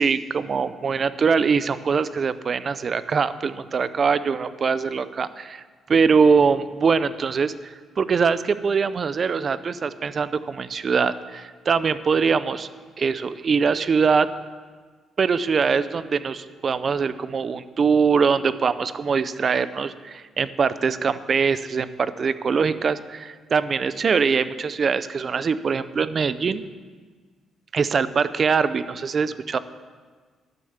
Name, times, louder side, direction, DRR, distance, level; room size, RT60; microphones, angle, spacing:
voice 1, 0.0-12.7 13.0-14.3 15.2-26.6 27.7-29.6, right 5 dB, 45° right, 14 dB, 0.5 m, -22 dB
12.0 x 6.4 x 7.2 m, 1.5 s
cardioid pair, 90°, 0 cm